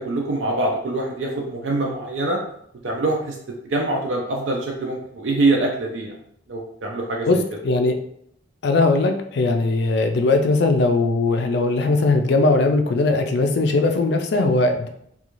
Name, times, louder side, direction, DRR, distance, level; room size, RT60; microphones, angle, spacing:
voice 1, 0.0-2.4 2.8-3.4 3.6-6.1 6.5-7.4, right 2 dB, 75° right, -1 dB, 0.4 m, -24 dB
voice 2, 7.3-8.0 8.6-14.9, left 3 dB, 60° left, 6 dB, 0.4 m, -19 dB
2.5 x 2.3 x 3.0 m, 0.69 s
head